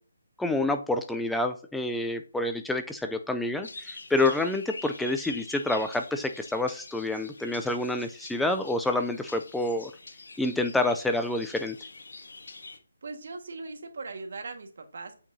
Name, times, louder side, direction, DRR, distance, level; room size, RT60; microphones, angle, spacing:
voice 1, 0.4-9.9 10.4-11.8, left 2 dB, 5° left, 7 dB, 0.4 m, -28 dB
sound 1, 3.6-12.8, left 3 dB, 70° left, 1.6 m, -45 dB
voice 2, 13.0-15.2, right 3 dB, 60° right, 5 dB, 1.5 m, -39 dB
8.6 x 4.7 x 2.7 m, 0.40 s
figure-of-eight pair, 160°, 0 cm